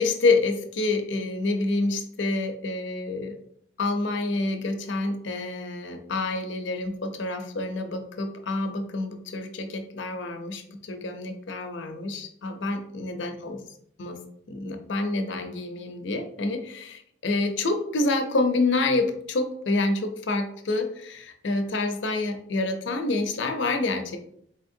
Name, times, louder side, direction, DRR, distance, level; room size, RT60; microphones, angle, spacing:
voice 1, 0.0-3.4 3.8-13.6 14.0-14.2 14.5-24.2, left 2 dB, 75° left, 6 dB, 0.6 m, -27 dB
4.0 x 3.5 x 2.6 m, 0.68 s
head